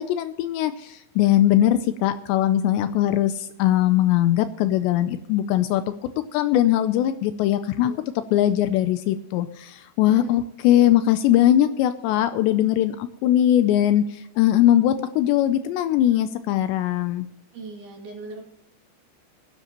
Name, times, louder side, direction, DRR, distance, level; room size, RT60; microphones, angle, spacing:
voice 1, 0.0-5.8 6.3-7.9 8.3-17.3, left 12 dB, 80° left, 10 dB, 2.7 m, -20 dB
voice 2, 10.1-10.4 17.5-18.5, right 3 dB, 60° right, -2 dB, 4.3 m, -39 dB
20.0 x 9.8 x 3.0 m, 0.86 s
omnidirectional pair, 5.4 m